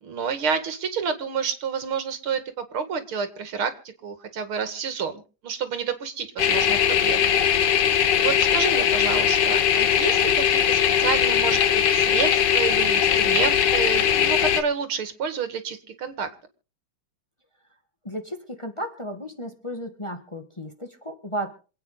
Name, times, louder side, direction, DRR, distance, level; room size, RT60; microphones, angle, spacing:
voice 1, 0.0-3.7 4.0-7.3 8.2-16.3, right 6 dB, 80° right, 10 dB, 2.8 m, -29 dB
sound 1, 6.4-14.6, left 9 dB, 60° left, 1.7 m, -20 dB
voice 2, 18.0-21.5, equal, 15° left, 6 dB, 1.6 m, -34 dB
26.5 x 8.9 x 3.9 m, 0.36 s
omnidirectional pair, 2.3 m